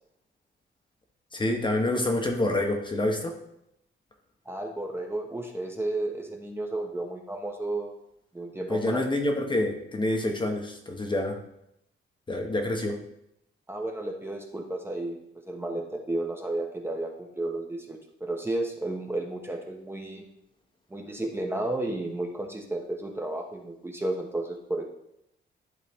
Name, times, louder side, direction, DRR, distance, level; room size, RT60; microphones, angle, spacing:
voice 1, 1.3-3.4 8.7-11.4 12.3-13.0, left 1 dB, 25° left, 3 dB, 1.0 m, -27 dB
voice 2, 4.5-7.9 8.3-9.0 13.7-15.2 15.5-20.2 20.9-24.8, right 2 dB, 10° right, 1 dB, 1.1 m, -32 dB
11.5 x 3.8 x 3.6 m, 0.79 s
cardioid pair, 110°, 20 cm